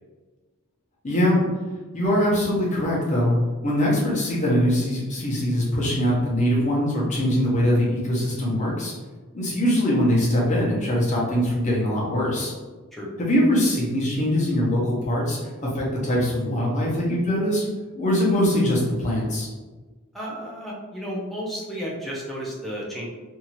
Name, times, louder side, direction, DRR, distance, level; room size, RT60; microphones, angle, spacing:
voice 1, 1.0-1.4 1.9-3.4 3.6-8.9 9.3-12.5 13.2-17.7 18.0-19.5, equal, 35° left, -5 dB, 0.9 m, -22 dB
voice 2, 20.1-23.1, equal, ahead, -5 dB, 0.6 m, -32 dB
2.7 x 2.6 x 2.9 m, 1.3 s
head